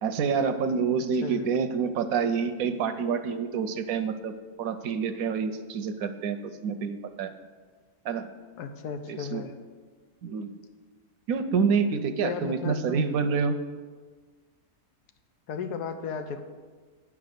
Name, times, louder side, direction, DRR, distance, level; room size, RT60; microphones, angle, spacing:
voice 1, 0.0-4.3 4.6-7.3 8.0-8.2 9.1-9.4 10.2-10.5 11.3-13.6, right 6 dB, 75° right, 10 dB, 1.0 m, -27 dB
voice 2, 8.6-9.5 12.2-13.1 15.5-16.4, left 5 dB, 85° left, 8 dB, 1.3 m, -35 dB
9.0 x 6.0 x 6.4 m, 1.5 s
omnidirectional pair, 1.6 m